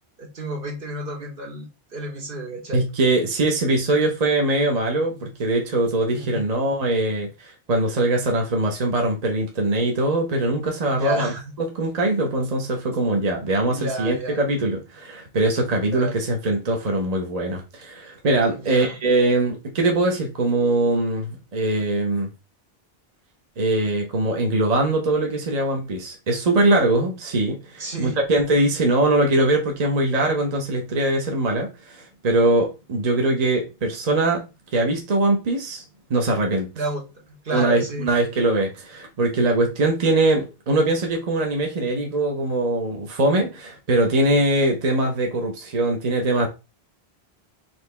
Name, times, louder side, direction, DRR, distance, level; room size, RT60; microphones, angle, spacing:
voice 1, 0.2-2.8 6.1-6.5 10.9-11.4 13.6-14.4 15.9-16.2 18.5-18.9 27.8-28.2 36.8-37.0 37.3-38.1, right 1 dB, 60° right, 1.3 m, -31 dB
voice 2, 2.7-11.3 11.6-22.3 23.6-35.8 36.1-36.7 37.5-46.5, right 2 dB, 45° right, 0.8 m, -22 dB
4.3 x 2.8 x 3.2 m
omnidirectional pair, 1.1 m